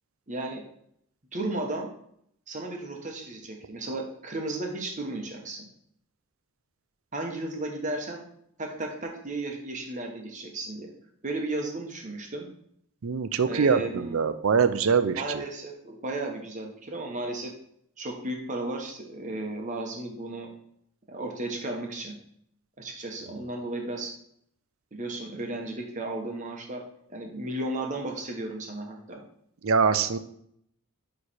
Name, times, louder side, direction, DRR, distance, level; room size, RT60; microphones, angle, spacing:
voice 1, 0.3-0.6 1.3-1.9 2.5-5.7 7.1-8.2 8.6-10.9 11.2-12.5 13.5-14.2 15.2-17.5 18.0-20.5 21.1-22.2 22.8-24.1 24.9-26.8 27.1-29.2, right 2 dB, 35° right, 2 dB, 1.1 m, -34 dB
voice 2, 13.0-15.4 29.6-30.2, right 5 dB, 75° right, 11 dB, 0.5 m, -23 dB
9.5 x 3.3 x 4.3 m, 0.70 s
head